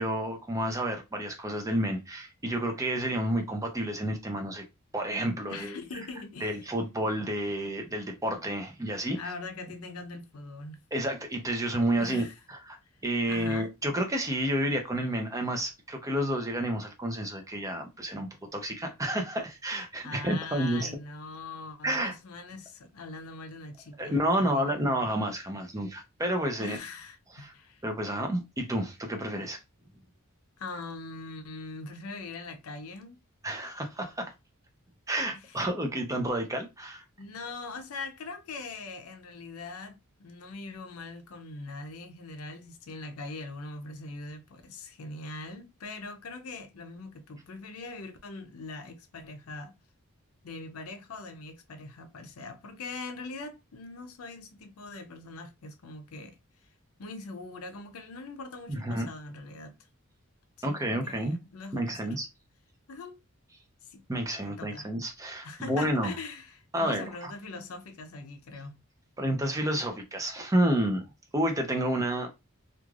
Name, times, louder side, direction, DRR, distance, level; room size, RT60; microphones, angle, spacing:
voice 1, 0.0-4.6 4.9-5.8 6.4-9.2 10.9-12.3 12.7-12.8 13.0-20.9 21.8-22.1 24.0-26.8 27.4-27.5 27.8-29.6 33.4-34.3 35.1-37.0 58.7-59.1 60.6-61.4 61.7-62.3 64.1-66.1 66.7-67.0 69.2-71.0 71.3-72.3, right 1 dB, 15° right, 0.6 m, -30 dB
voice 2, 5.5-6.7 9.1-10.8 12.0-12.4 13.3-13.7 20.0-24.9 26.6-27.8 30.6-33.2 35.3-35.7 37.2-49.7 50.4-56.4 57.0-59.8 60.7-62.2 62.9-63.2 63.8-64.0 64.4-64.9 65.4-68.8, left 3 dB, 80° left, 0.5 m, -42 dB
3.1 x 2.4 x 2.4 m
head